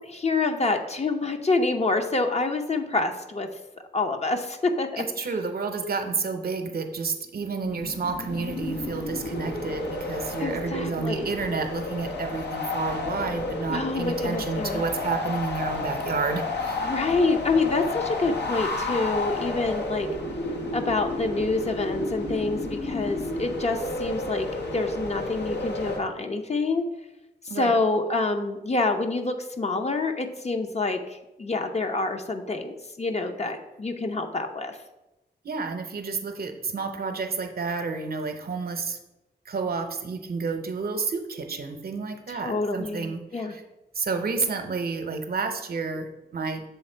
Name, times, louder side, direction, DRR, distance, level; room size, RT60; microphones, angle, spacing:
voice 1, 0.1-3.5 3.9-5.0 10.4-11.3 13.7-14.8 16.8-20.1 20.7-26.9 27.5-34.8 42.3-43.5, left 3 dB, 40° left, 5 dB, 0.7 m, -27 dB
voice 2, 5.0-16.9 27.5-27.7 35.4-39.0 39.5-43.6 43.9-46.6, right 4 dB, 60° right, 6 dB, 0.7 m, -30 dB
sound 1, 7.6-26.0, left 2 dB, 80° left, 1.0 m, -31 dB
7.0 x 3.4 x 4.4 m, 0.97 s
cardioid pair, 65°, 18 cm